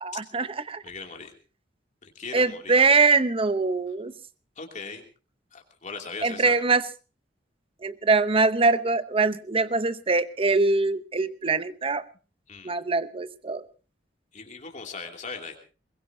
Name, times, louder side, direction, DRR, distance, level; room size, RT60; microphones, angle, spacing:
voice 1, 0.0-0.8 2.3-4.1 6.2-6.8 7.8-12.0 12.6-13.7, right 3 dB, 30° right, 13 dB, 0.8 m, -23 dB
voice 2, 0.8-1.3 2.0-2.8 4.6-5.0 5.5-6.6 12.5-12.7 14.3-15.6, left 4 dB, 45° left, 3 dB, 2.8 m, -39 dB
22.5 x 21.0 x 2.8 m, 0.35 s
head